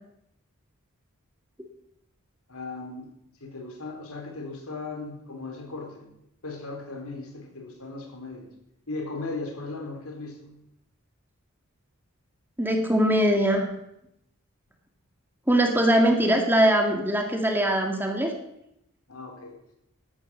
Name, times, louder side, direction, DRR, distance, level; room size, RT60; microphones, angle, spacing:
voice 1, 2.5-3.1 3.4-6.1 6.4-8.5 8.9-10.5 19.1-19.8, left 3 dB, 80° left, 3 dB, 4.2 m, -37 dB
voice 2, 12.6-13.7 15.5-18.3, right 1 dB, 10° right, 3 dB, 1.9 m, -21 dB
12.5 x 11.0 x 8.3 m, 0.83 s
head